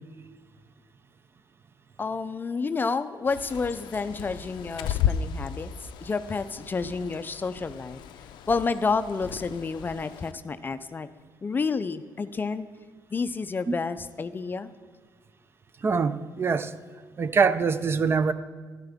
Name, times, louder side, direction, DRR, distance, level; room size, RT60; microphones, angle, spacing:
voice 1, 2.0-5.7 6.0-8.0 8.5-11.1 11.4-12.7 13.1-14.7, left 4 dB, 25° left, 12 dB, 0.4 m, -30 dB
Bird, 3.2-10.3, left 9 dB, 85° left, 0.4 m, -34 dB
voice 2, 15.8-16.7 17.2-18.3, right 5 dB, 30° right, 13 dB, 0.4 m, -24 dB
12.0 x 10.5 x 3.5 m, 1.5 s
cardioid pair, 110°, 8 cm